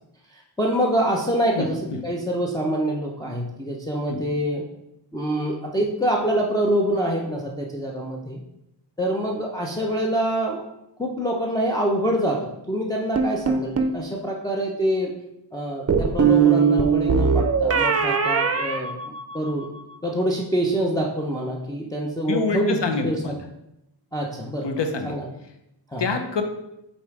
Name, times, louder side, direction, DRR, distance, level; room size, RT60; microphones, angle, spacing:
voice 1, 0.3-4.6 5.1-8.4 9.0-10.7 11.0-12.4 12.7-15.1 15.5-19.7 20.0-23.4 24.1-24.7 25.0-25.3 25.9-26.1, right 1 dB, 10° left, -3 dB, 0.7 m, -25 dB
voice 2, 1.5-2.0 4.1-4.2 22.3-23.4 24.6-25.2 26.0-26.4, left 3 dB, 75° left, 6 dB, 0.9 m, -26 dB
sound 1, 13.2-14.0 15.9-19.6, right 6 dB, 35° right, 0.6 m, -20 dB
5.4 x 4.1 x 4.8 m, 0.85 s
wide cardioid pair, 110°, 43 cm